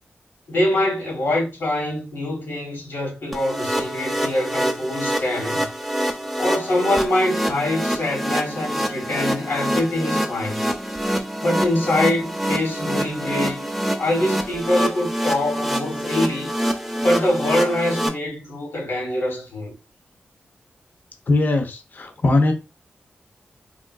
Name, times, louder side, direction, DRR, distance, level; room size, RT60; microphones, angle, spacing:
voice 1, 0.5-5.7 6.4-10.6 11.4-13.7 14.0-16.5 17.0-19.7, left 1 dB, 80° left, 1.4 m, -24 dB
sound 1, 3.3-18.1, equal, ahead, 0.6 m, -26 dB
voice 2, 21.3-22.5, left 2 dB, 55° left, 0.7 m, -20 dB
3.7 x 2.2 x 2.3 m
cardioid pair, 55°, 4 cm